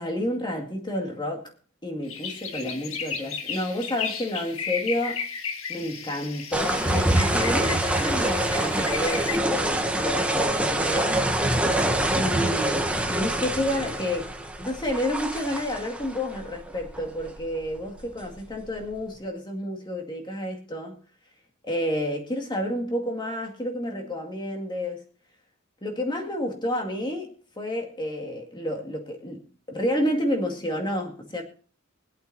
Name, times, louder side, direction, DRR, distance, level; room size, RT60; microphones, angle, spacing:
voice 1, 0.0-1.5 1.8-5.2 5.7-11.2 12.1-21.0 21.6-25.0 25.8-31.4, left 1 dB, 20° left, 2.2 m, -30 dB
sound 1, 2.0-9.4, left 6 dB, 75° left, 1.5 m, -34 dB
sound 2, 6.5-19.1, right 1 dB, 5° right, 1.0 m, -26 dB
24.0 x 8.4 x 2.8 m
head